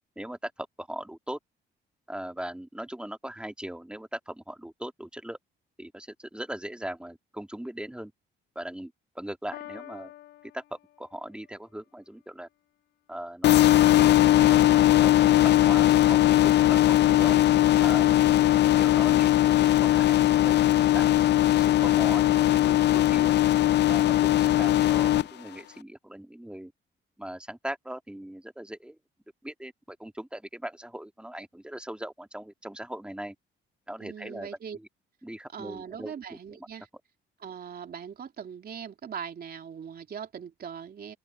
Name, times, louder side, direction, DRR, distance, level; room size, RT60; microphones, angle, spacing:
voice 1, 0.2-1.4 2.1-5.4 5.8-8.1 8.6-10.1 10.4-12.5 13.1-13.7 14.0-18.3 18.6-20.6 20.9-23.3 23.9-26.7 27.2-29.0 29.4-33.4 33.9-34.9 35.2-36.7, right 1 dB, 5° right, 1.9 m, -39 dB
Piano, 9.5-11.5, left 14 dB, 90° left, 2.9 m, -46 dB
sound 1, 13.4-25.2, left 14 dB, 60° left, 0.5 m, -20 dB
voice 2, 17.3-18.5 34.0-34.8 35.5-36.9 37.4-41.2, right 7 dB, 50° right, 3.0 m, -41 dB
cardioid pair, 90°, 20 cm